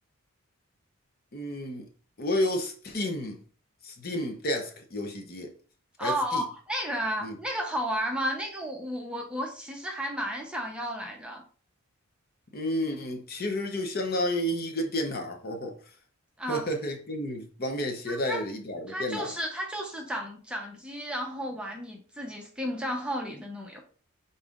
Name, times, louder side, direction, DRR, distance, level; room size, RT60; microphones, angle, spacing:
voice 1, 1.3-1.9 2.2-3.4 3.8-5.5 6.0-6.4 7.2-7.4 12.5-15.8 16.5-19.3, left 1 dB, 45° left, 0.7 m, -31 dB
voice 2, 6.0-11.4 16.4-16.6 18.1-18.4 18.9-23.8, equal, 5° right, 0.7 m, -33 dB
5.3 x 4.0 x 2.5 m
head